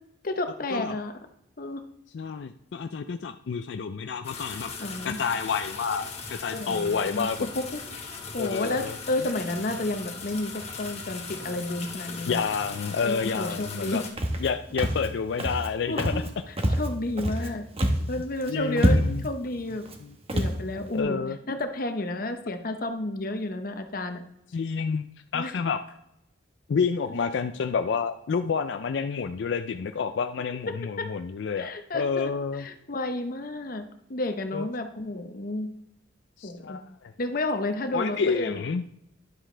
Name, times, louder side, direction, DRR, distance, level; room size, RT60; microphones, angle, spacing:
voice 1, 0.2-1.1 1.6-1.8 4.8-5.2 6.5-7.3 7.5-7.8 8.3-12.4 13.0-14.0 15.9-17.6 18.1-19.8 20.3-24.2 25.3-25.5 27.1-27.3 30.7-31.1 31.6-32.3 32.6-33.8 34.1-35.7 36.4-36.8 37.2-38.6, left 2 dB, 55° left, 7 dB, 0.9 m, -31 dB
voice 2, 2.1-4.7 5.0-7.5 8.4-8.9 12.3-14.0 14.4-16.2 17.4-17.6 18.5-19.2 20.0-20.1 20.8-21.4 24.5-25.1 25.3-25.8 26.7-32.7 34.5-34.7 36.4-37.1 37.9-38.8, left 5 dB, 85° left, 8 dB, 0.4 m, -29 dB
sound 1, 4.2-14.1, left 4 dB, 35° left, 1.4 m, -39 dB
Walk footsteps, 14.2-14.5 14.8-15.1 15.4-15.7 16.0-16.3 16.6-17.5 17.8-18.1 18.4-18.5 18.8-19.3 19.8-20.0 20.3-20.6, equal, 35° right, 1.1 m, -25 dB
10.5 x 7.5 x 3.3 m, 0.81 s
head